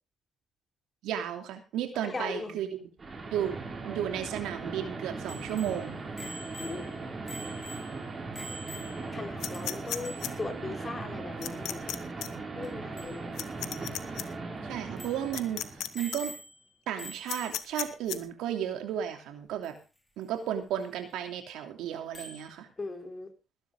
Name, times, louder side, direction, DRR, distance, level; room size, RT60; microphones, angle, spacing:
voice 1, 1.0-2.9 3.3-3.6 3.8-6.0 14.6-16.3 16.9-19.8 20.2-22.7, right 10 dB, 90° right, 5 dB, 2.9 m, -34 dB
voice 2, 2.0-2.6 6.3-6.9 9.1-11.9 12.6-13.4 22.8-23.3, left 3 dB, 30° left, 4 dB, 4.2 m, -39 dB
sound 1, 2.4-2.5 3.0-16.0, right 3 dB, 35° right, 5.5 m, -39 dB
Bicycle bell, 5.3-9.2 9.5-9.6 9.9-10.4 12.6-12.7 13.0-13.2 13.7-13.8 14.2-14.3 15.0-15.3 15.9-16.7 17.0-17.8 19.6-19.7 22.1-22.5, equal, 15° left, 4.8 m, -45 dB
sound 2, 9.4-10.3 11.4-12.0 12.2-12.3 13.4-14.2 15.3-15.9 16.1-16.2 17.3-18.2, left 12 dB, 85° left, 1.2 m, -34 dB
19.5 x 11.0 x 3.7 m, 0.32 s
cardioid pair, 90°, 0 cm